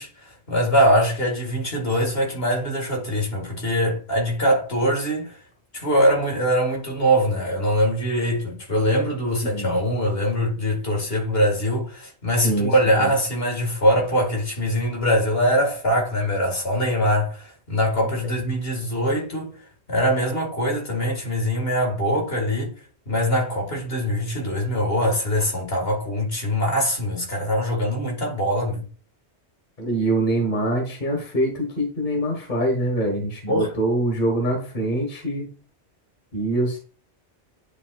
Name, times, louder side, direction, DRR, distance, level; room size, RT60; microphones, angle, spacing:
voice 1, 0.0-5.4 5.7-22.7 23.1-28.9 33.5-33.7, equal, 60° left, 2.2 m, -23 dB
voice 2, 29.8-35.5 36.3-36.8, right 1 dB, 45° left, 1.7 m, -24 dB
10.0 x 5.3 x 2.4 m
omnidirectional pair, 1.2 m